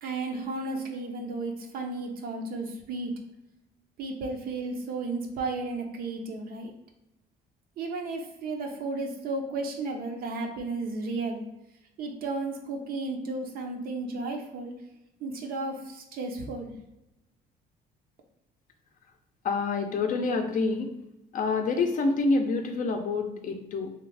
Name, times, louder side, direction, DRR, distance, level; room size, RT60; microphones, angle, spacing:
voice 1, 0.0-3.1 4.0-6.7 7.8-11.4 12.0-14.7 15.2-16.7, right 3 dB, 60° right, 3 dB, 0.6 m, -33 dB
voice 2, 19.4-20.9 21.3-23.9, left 3 dB, 50° left, 4 dB, 0.5 m, -27 dB
2.9 x 2.3 x 3.3 m, 0.92 s
cardioid pair, 110°, 17 cm